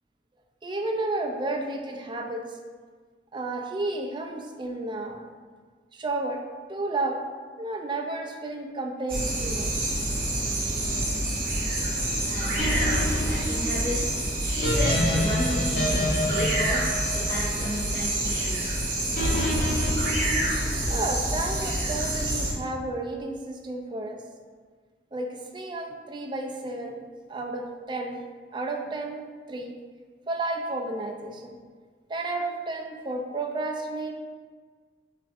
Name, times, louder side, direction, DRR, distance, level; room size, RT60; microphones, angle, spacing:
voice 1, 0.6-2.4 3.3-5.2 5.9-6.4 6.7-7.2 7.6-9.8 20.9-24.2 25.1-27.0 27.3-28.2 28.5-29.2 29.5-29.7 30.3-31.6 32.1-34.1, right 2 dB, 25° right, 3 dB, 0.4 m, -32 dB
sound 1, 9.1-22.5, right 1 dB, 50° right, 1.0 m, -27 dB
voice 2, 12.2-15.9 16.3-18.7, left 1 dB, 25° left, -11 dB, 1.5 m, -33 dB
sound 2, 12.6-17.9 19.2-21.1, left 1 dB, 50° left, 0.8 m, -28 dB
6.3 x 2.6 x 2.5 m, 1.6 s
head